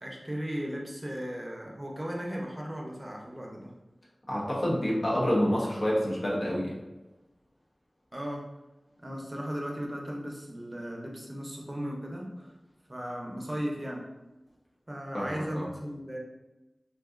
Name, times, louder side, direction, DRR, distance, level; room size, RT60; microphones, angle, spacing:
voice 1, 0.0-3.7 8.1-8.4 9.0-12.5 12.9-14.1 14.9-16.2, equal, 25° right, -1 dB, 0.6 m, -36 dB
voice 2, 4.3-6.8 15.1-15.6, equal, 60° left, -5 dB, 0.9 m, -28 dB
3.7 x 2.6 x 2.4 m, 1.0 s
wide cardioid pair, 60°, 0 cm